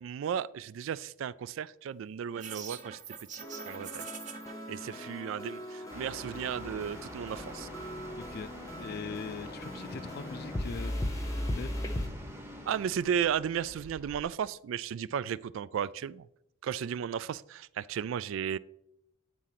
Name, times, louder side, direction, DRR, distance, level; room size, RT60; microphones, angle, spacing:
voice 1, 0.0-3.0 3.3-4.0 4.7-7.7 12.7-16.3 16.6-18.6, right 8 dB, 70° right, 0.3 m, -34 dB
sound 1, 2.3-4.5, right 6 dB, 35° right, 0.9 m, -43 dB
sound 2, 3.4-12.1, left 1 dB, 15° left, 0.8 m, -38 dB
sound 3, 5.9-14.2, equal, 10° right, 1.0 m, -46 dB
voice 2, 8.8-10.9 11.6-12.3, left 5 dB, 50° left, 0.4 m, -41 dB
9.5 x 3.7 x 5.8 m
head